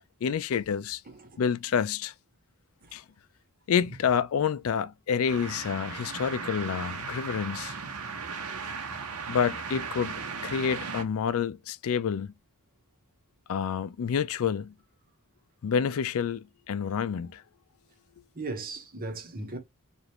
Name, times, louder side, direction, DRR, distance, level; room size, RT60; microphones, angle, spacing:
voice 1, 0.2-1.0 1.4-2.1 2.9-3.0 3.7-7.7 9.3-10.2 10.4-12.3 13.5-14.7 15.6-17.4, left 7 dB, 65° left, 0.4 m, -28 dB
voice 2, 1.1-1.4 2.8-2.9 18.3-19.6, right 2 dB, 40° right, 1.1 m, -37 dB
sound 1, 5.3-11.0, right 5 dB, 85° right, 0.9 m, -37 dB
5.0 x 2.5 x 2.9 m
head